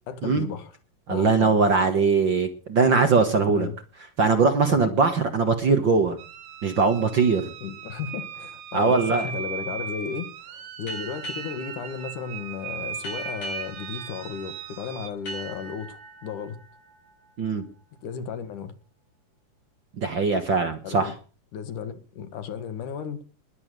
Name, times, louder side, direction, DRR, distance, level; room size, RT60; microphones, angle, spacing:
voice 1, 0.1-0.7 1.1-1.5 3.5-3.7 4.7-5.0 7.6-16.6 18.0-18.7 20.8-21.1 21.5-23.2, left 7 dB, 75° left, 3.1 m, -34 dB
voice 2, 1.1-3.7 4.2-6.2 6.6-7.5 8.7-9.3 17.4-17.6 20.0-21.1, right 4 dB, 45° right, 1.8 m, -21 dB
sound 1, 6.2-15.1, right 7 dB, 70° right, 2.7 m, -38 dB
sound 2, 10.9-18.2, right 2 dB, 55° left, 8.3 m, -41 dB
20.5 x 8.3 x 6.8 m
omnidirectional pair, 3.7 m